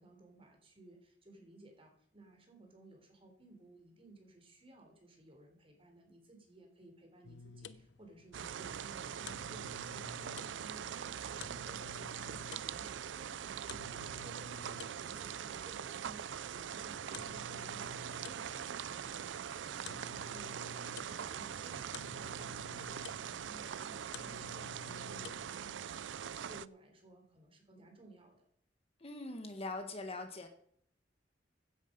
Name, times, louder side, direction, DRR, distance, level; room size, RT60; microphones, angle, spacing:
voice 1, 0.0-16.2 16.5-28.5, right 2 dB, 30° right, 3 dB, 3.8 m, -58 dB
sound 1, 7.2-25.6, left 5 dB, 85° left, 0.8 m, -53 dB
sound 2, 8.3-26.7, right 8 dB, 90° right, 0.4 m, -42 dB
voice 2, 29.0-30.5, left 2 dB, 35° left, 6 dB, 1.6 m, -42 dB
16.0 x 10.0 x 5.3 m, 0.64 s
head